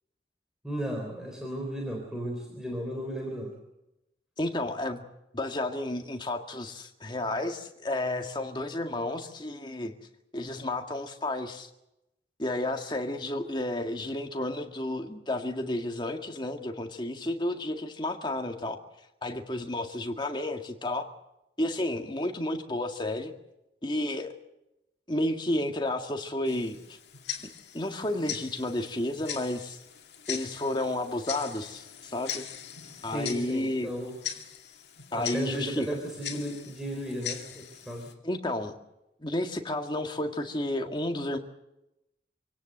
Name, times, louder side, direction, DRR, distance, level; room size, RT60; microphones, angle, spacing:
voice 1, 0.6-3.5 33.1-34.1 35.1-38.1, right 1 dB, 5° right, 0 dB, 3.9 m, -34 dB
voice 2, 4.4-5.0 5.3-9.9 10.3-11.7 12.4-18.8 19.2-21.1 21.6-23.3 23.8-24.3 25.1-27.0 27.4-29.8 30.3-32.5 33.0-33.9 35.1-35.9 38.2-38.7 39.2-41.4, left 1 dB, 25° left, 4 dB, 1.9 m, -31 dB
Tick-tock, 26.4-38.1, left 9 dB, 70° left, 2.3 m, -41 dB
26.0 x 17.5 x 7.9 m, 0.90 s
head